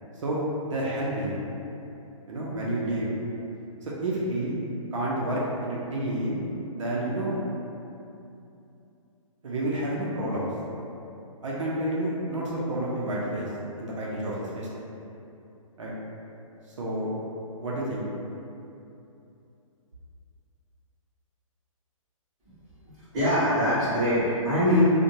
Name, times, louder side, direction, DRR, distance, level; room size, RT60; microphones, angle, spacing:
voice 1, 0.2-1.4 2.3-3.1 3.8-4.6 4.9-6.4 6.7-7.4 9.4-10.5 11.4-13.5 13.8-14.7 15.8-15.9 16.8-17.1 17.6-18.1, right 1 dB, 60° right, -5 dB, 0.5 m, -29 dB
voice 2, 22.8-24.8, equal, 15° right, -16 dB, 0.9 m, -24 dB
2.8 x 2.1 x 2.6 m, 2.8 s
hypercardioid pair, 180°, 18 cm